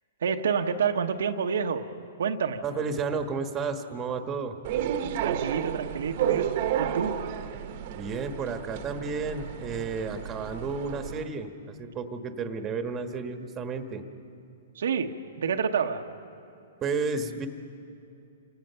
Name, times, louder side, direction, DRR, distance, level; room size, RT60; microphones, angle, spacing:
voice 1, 0.2-1.9 2.2-2.6 5.2-7.2 14.7-16.0, right 6 dB, 75° right, 4 dB, 1.1 m, -28 dB
voice 2, 2.6-4.6 7.9-14.0 16.8-17.5, right 4 dB, 20° right, 7 dB, 1.3 m, -32 dB
sound 1, 4.6-11.2, right 10 dB, 50° right, 1.2 m, -32 dB
27.5 x 18.0 x 5.7 m, 2.8 s
hypercardioid pair, 135°, 0 cm